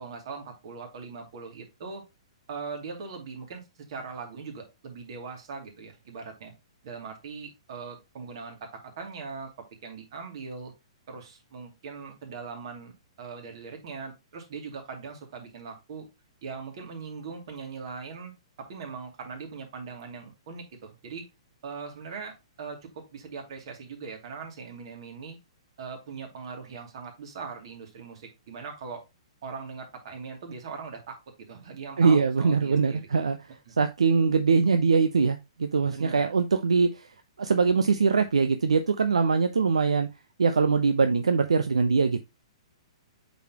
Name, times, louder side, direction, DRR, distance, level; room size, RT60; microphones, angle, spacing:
voice 1, 0.0-2.0 2.5-6.5 6.8-9.5 9.8-10.7 11.1-12.9 13.2-16.1 16.4-18.3 18.6-21.2 21.6-25.4 25.8-29.0 29.4-31.2 31.5-33.0 35.9-36.3, right 5 dB, 55° right, 2.6 m, -40 dB
voice 2, 32.0-33.4 33.8-40.1 40.4-42.2, right 5 dB, 85° right, 0.6 m, -23 dB
8.2 x 4.2 x 2.9 m
hypercardioid pair, 125°, 3 cm